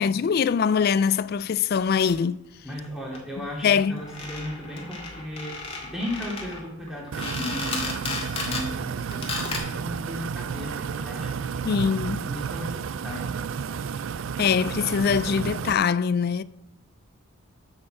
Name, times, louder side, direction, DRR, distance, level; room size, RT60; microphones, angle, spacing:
voice 1, 0.0-2.4 3.6-4.0 11.6-12.3 14.4-16.4, left 6 dB, 45° left, 0.3 m, -23 dB
sound 1, 1.8-2.2 2.8-2.9 3.1-3.2 3.4-3.5 3.7-8.7 9.1-9.6, left 3 dB, 25° left, 1.8 m, -34 dB
voice 2, 2.6-5.6 5.9-11.8 12.3-13.5, left 1 dB, ahead, 2.7 m, -36 dB
sound 2, 7.1-15.7, right 6 dB, 60° right, 0.4 m, -32 dB
7.3 x 6.4 x 7.8 m
head